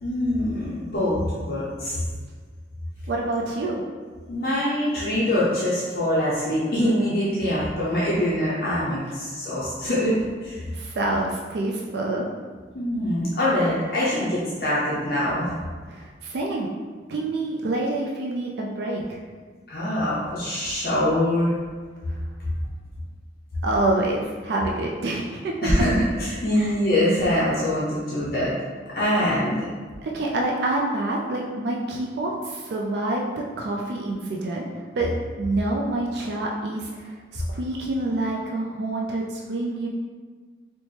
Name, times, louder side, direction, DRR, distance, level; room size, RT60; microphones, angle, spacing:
voice 1, 0.0-2.0 4.3-10.7 12.7-15.6 19.7-21.5 25.6-28.5 28.9-29.5, left 1 dB, 55° left, -8 dB, 0.6 m, -24 dB
voice 2, 3.1-3.8 10.7-12.3 15.9-16.7 17.1-19.2 23.6-25.5 26.5-26.8 30.0-33.3 33.6-35.1 35.4-39.9, right 2 dB, 70° right, -2 dB, 0.4 m, -27 dB
4.1 x 2.1 x 3.2 m, 1.5 s
head